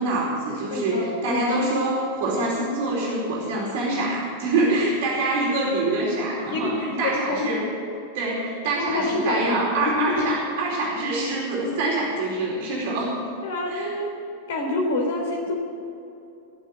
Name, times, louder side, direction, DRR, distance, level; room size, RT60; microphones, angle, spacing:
voice 1, 0.0-7.7 8.1-13.2 13.7-13.9, right 2 dB, 50° right, -4 dB, 4.6 m, -25 dB
voice 2, 0.7-1.4 6.4-7.5 8.8-10.3 13.4-14.1 14.5-15.5, left 2 dB, 60° left, 2 dB, 3.5 m, -26 dB
19.5 x 7.4 x 9.4 m, 2.7 s
figure-of-eight pair, 90°, 0 cm